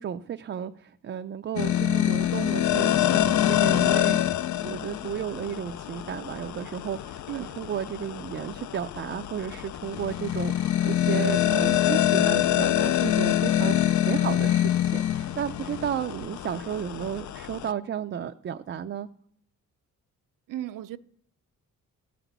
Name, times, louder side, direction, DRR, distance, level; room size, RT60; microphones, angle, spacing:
voice 1, 0.0-4.2 4.6-19.1, right 9 dB, 40° right, 0.4 m, -33 dB
sound 1, 1.6-17.7, left 12 dB, 65° left, 0.5 m, -25 dB
voice 2, 7.3-7.6 14.2-14.5 20.5-21.0, right 13 dB, 80° right, 0.6 m, -36 dB
14.5 x 5.9 x 8.1 m
wide cardioid pair, 140°, 32 cm